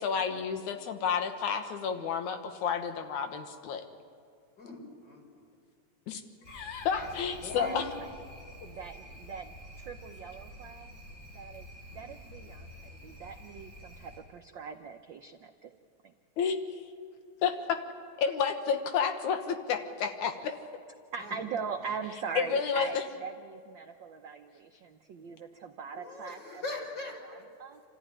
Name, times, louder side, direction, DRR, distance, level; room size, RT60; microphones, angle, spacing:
voice 1, 0.0-3.8 6.1-6.2 6.5-7.8 16.4-16.6 17.4-17.8 18.2-20.5 22.4-23.0, left 7 dB, 85° left, 6 dB, 2.7 m, -30 dB
voice 2, 4.6-5.5 7.0-7.9 11.9-12.1 12.4-12.5 21.2-21.3 25.9-27.4, left 1 dB, 35° left, -1 dB, 6.4 m, -41 dB
sound 1, 6.4-14.2, equal, 65° left, 8.1 m, -49 dB
voice 3, 7.3-8.1 8.6-10.9 11.3-15.7 16.0-16.1 21.1-26.8 27.2-27.8, right 6 dB, 80° right, 5 dB, 1.0 m, -41 dB
28.5 x 14.5 x 10.0 m, 2.2 s
omnidirectional pair, 3.3 m